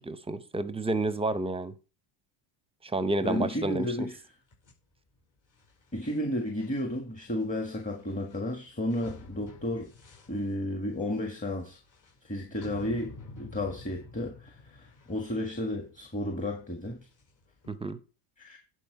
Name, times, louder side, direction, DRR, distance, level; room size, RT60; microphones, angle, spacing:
voice 1, 0.0-1.7 2.8-4.1 17.7-18.0, right 2 dB, 10° right, 14 dB, 0.7 m, -30 dB
voice 2, 3.2-4.1 5.9-9.9 10.3-11.8 12.2-17.0 18.4-18.6, left 1 dB, 15° left, 3 dB, 1.7 m, -32 dB
sound 1, 4.5-17.7, left 3 dB, 35° left, 5.1 m, -51 dB
10.5 x 4.7 x 4.8 m, 0.33 s
supercardioid pair, 110°, 49 cm